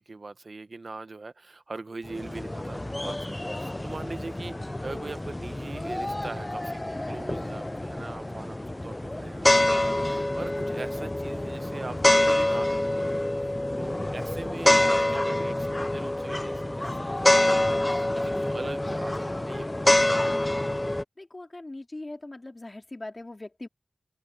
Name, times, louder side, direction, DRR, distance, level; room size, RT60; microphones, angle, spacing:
voice 1, 0.0-8.6 8.8-19.9, right 3 dB, 75° right, 1.1 m, -41 dB
sound 1, 2.0-21.0, left 1 dB, 30° left, 0.3 m, -26 dB
voice 2, 21.2-23.7, left 2 dB, 45° left, 3.4 m, -40 dB
wide cardioid pair, 45°, 0 cm